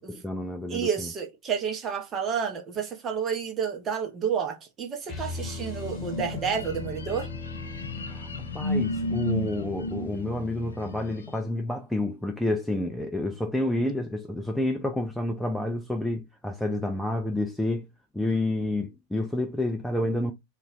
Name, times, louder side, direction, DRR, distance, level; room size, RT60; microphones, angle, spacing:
voice 1, 0.1-1.1 8.1-8.3 8.5-17.9 18.1-20.3, left 1 dB, 5° left, 0.4 m, -29 dB
voice 2, 0.7-7.3, right 7 dB, 25° right, 0.8 m, -30 dB
sound 1, 5.0-11.2, left 3 dB, 20° left, 1.0 m, -39 dB
sound 2, 5.4-11.4, left 1 dB, 70° left, 0.5 m, -33 dB
2.4 x 2.1 x 3.5 m
figure-of-eight pair, 90°, 0 cm